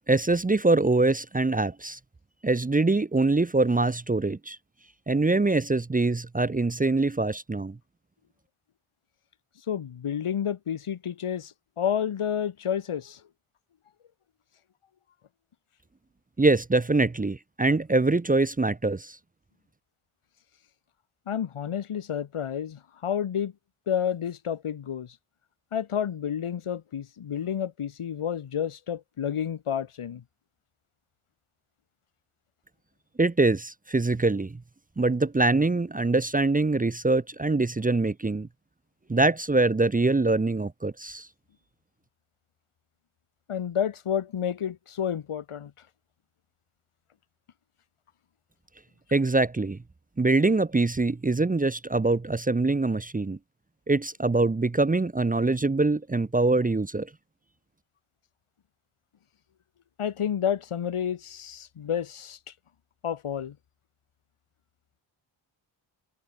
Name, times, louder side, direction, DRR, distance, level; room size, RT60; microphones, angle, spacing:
voice 1, 0.1-2.0 2.4-4.6 5.1-7.8 16.4-19.2 33.2-34.6 35.0-38.5 39.1-41.3 49.1-49.8 50.2-53.4 53.9-57.1, right 2 dB, 15° right, 0.8 m, -24 dB
voice 2, 9.7-13.2 21.3-23.5 23.9-25.1 25.7-30.2 43.5-45.7 60.0-62.4 63.0-63.5, left 8 dB, 90° left, 3.9 m, -30 dB
wide cardioid pair, 170°, 49 cm